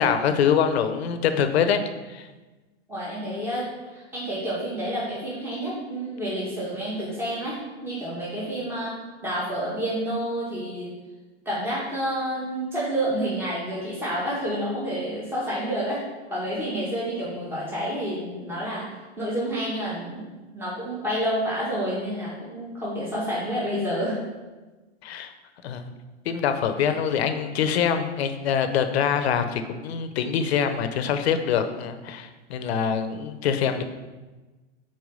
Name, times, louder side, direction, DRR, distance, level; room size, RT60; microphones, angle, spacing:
voice 1, 0.0-1.8 2.1-2.3 25.0-25.3 25.6-25.9 26.3-33.8, left 7 dB, 65° left, 9 dB, 0.8 m, -24 dB
voice 2, 2.9-7.6 7.8-8.9 9.2-10.9 11.5-16.0 16.3-18.9 19.2-24.2, equal, 5° right, -8 dB, 1.8 m, -29 dB
4.6 x 4.5 x 5.5 m, 1.2 s
hypercardioid pair, 120°, 33 cm